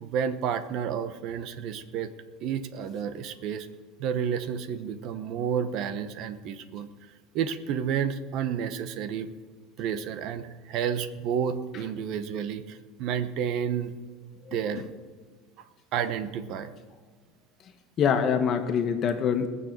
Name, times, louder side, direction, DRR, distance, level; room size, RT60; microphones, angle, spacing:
voice 1, 0.0-2.1 2.4-3.7 4.0-6.9 7.3-9.3 9.8-14.0 14.5-14.8 15.9-16.7, right 8 dB, 60° right, 11 dB, 1.1 m, -30 dB
voice 2, 14.5-14.8 18.0-19.5, left 7 dB, 45° left, 7 dB, 1.6 m, -25 dB
18.0 x 6.9 x 7.7 m, 1.4 s
supercardioid pair, 110°, 0 cm